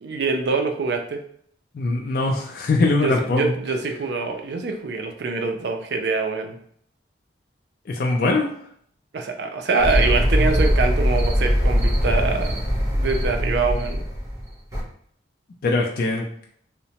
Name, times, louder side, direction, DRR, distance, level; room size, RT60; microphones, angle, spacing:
voice 1, 0.0-1.2 3.0-6.6 9.1-12.6 12.9-14.0, right 4 dB, 65° right, 5 dB, 0.4 m, -24 dB
voice 2, 1.7-3.5 7.9-8.5 15.6-16.3, left 2 dB, 50° left, 0 dB, 0.3 m, -21 dB
sound 1, 9.8-14.8, equal, 15° right, 0.6 m, -21 dB
2.8 x 2.1 x 2.8 m, 0.63 s
head